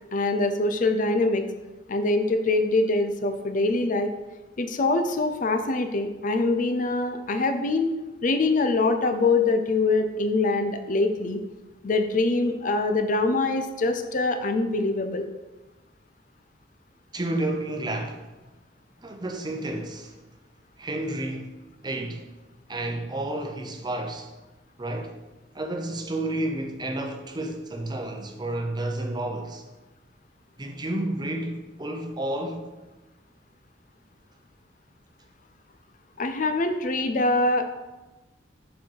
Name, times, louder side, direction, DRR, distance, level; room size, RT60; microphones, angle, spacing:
voice 1, 0.1-1.5 1.9-4.1 4.6-7.9 8.2-11.4 11.8-15.3 36.2-37.7, left 2 dB, 45° left, 0.5 m, -24 dB
voice 2, 17.1-18.3 19.0-20.1 20.8-21.5 21.8-22.3 22.7-24.3 24.8-25.1 25.5-29.6 30.6-32.7, right 1 dB, 25° right, 0.7 m, -31 dB
7.0 x 4.5 x 4.5 m
head